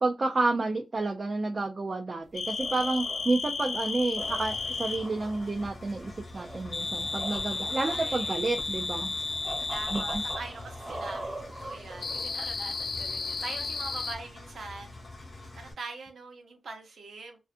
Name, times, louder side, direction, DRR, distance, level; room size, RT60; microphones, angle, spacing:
voice 1, 0.0-9.1 9.9-10.2, right 3 dB, 35° right, 0.3 m, -30 dB
sound 1, 2.3-5.1 6.7-10.4 12.0-14.1, left 4 dB, 55° left, 0.4 m, -33 dB
sound 2, 2.3-12.6, right 1 dB, 15° right, 0.7 m, -43 dB
Engine, 4.2-15.7, left 2 dB, 35° left, 1.0 m, -46 dB
voice 2, 7.5-8.4 9.7-14.9 15.6-17.4, right 3 dB, 70° right, 0.7 m, -42 dB
2.5 x 2.4 x 2.4 m
wide cardioid pair, 150°, 0 cm